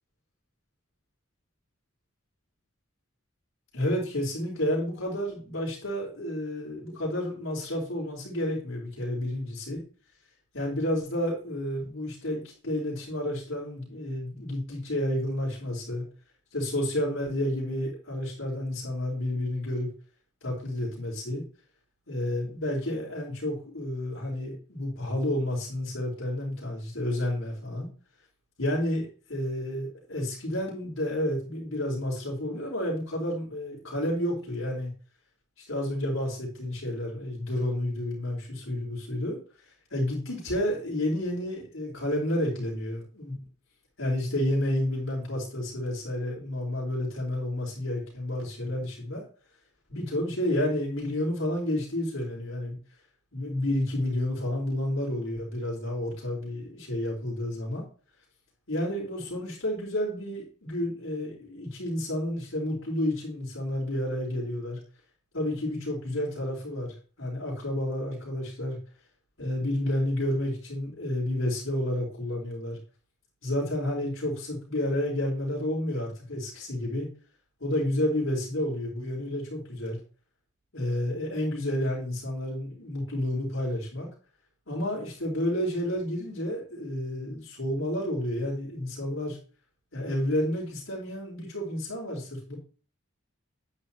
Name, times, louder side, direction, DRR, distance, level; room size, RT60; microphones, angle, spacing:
voice 1, 3.7-9.8 10.5-16.0 16.5-19.9 20.4-21.4 22.1-27.9 28.6-34.9 35.6-39.4 39.9-43.4 44.0-49.2 49.9-52.8 53.3-57.8 58.7-64.8 65.3-68.8 69.4-72.8 73.4-77.1 77.6-80.0 80.7-84.1 84.7-89.4 89.9-92.6, left 1 dB, 85° left, -4 dB, 4.2 m, -30 dB
9.7 x 9.4 x 3.0 m, 0.38 s
head